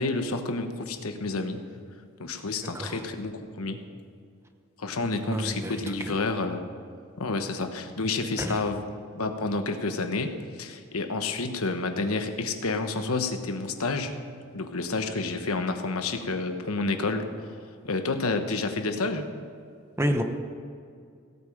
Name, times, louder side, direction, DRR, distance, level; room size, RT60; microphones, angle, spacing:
voice 1, 0.0-1.6 2.2-3.8 4.8-6.6 7.2-8.8 9.1-14.2 14.5-17.5 17.8-19.3, left 3 dB, 85° left, 7 dB, 1.1 m, -29 dB
voice 2, 5.1-6.1 8.4-8.6 20.0-20.2, equal, 10° right, 5 dB, 1.0 m, -30 dB
17.0 x 8.6 x 5.1 m, 2.3 s
head